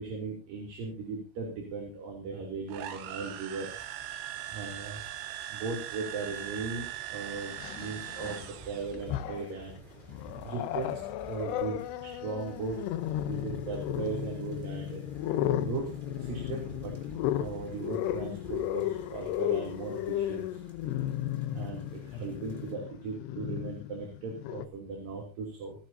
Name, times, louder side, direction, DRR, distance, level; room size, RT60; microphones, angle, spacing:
voice 1, 0.0-3.7 4.5-5.0 5.5-9.8 10.4-10.9 11.2-12.8 13.3-15.0 15.6-15.9 16.2-16.9 17.4-20.6 21.5-25.8, right 4 dB, 50° right, 0 dB, 4.1 m, -38 dB
sound 1, 2.7-9.0, right 11 dB, 85° right, 4.4 m, -40 dB
sound 2, 3.5-22.7, right 1 dB, 10° right, 2.6 m, -51 dB
Growling, 6.4-6.5 7.5-8.5 8.9-9.6 10.1-24.7, left 12 dB, 80° left, 2.5 m, -34 dB
29.0 x 10.0 x 2.7 m, 0.33 s
omnidirectional pair, 5.8 m